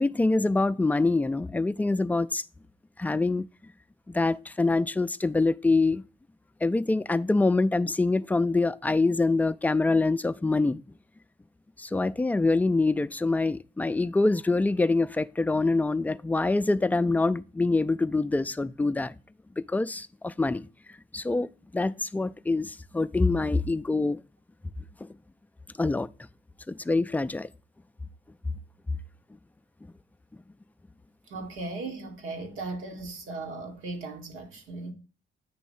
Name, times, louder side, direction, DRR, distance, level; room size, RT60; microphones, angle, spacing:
voice 1, 0.0-2.4 3.0-3.4 4.1-6.0 6.6-10.8 11.8-19.1 19.6-20.7 21.1-21.5 21.7-24.2 25.0-25.1 25.8-26.1 26.7-27.5, left 3 dB, 10° left, 0.3 m, -25 dB
voice 2, 31.3-34.9, right 3 dB, 85° right, 1.5 m, -37 dB
9.3 x 3.1 x 5.4 m
cardioid pair, 90°, 20 cm